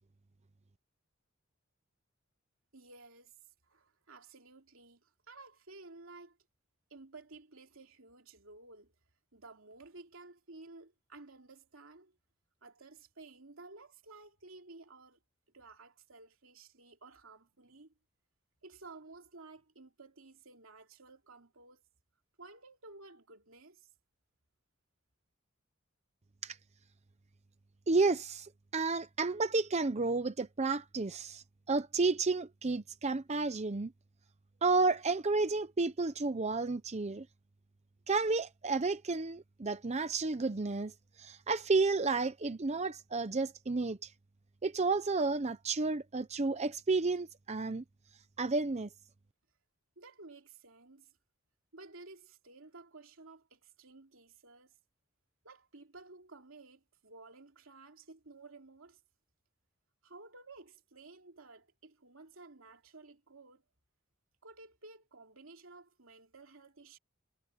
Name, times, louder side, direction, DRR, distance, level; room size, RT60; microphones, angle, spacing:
voice 1, 2.7-3.3 3.7-6.4 6.9-8.9 9.3-12.1 12.6-15.2 15.5-17.9 18.6-21.8 22.4-23.9 50.0-51.1 51.7-54.7 55.4-59.0 60.0-63.6 64.4-67.0, right 3 dB, 80° right, 2.9 m, -54 dB
voice 2, 27.9-33.9 34.6-37.3 38.1-40.9 41.2-44.1 44.6-47.8 48.4-48.9, right 3 dB, 35° right, 0.7 m, -31 dB
head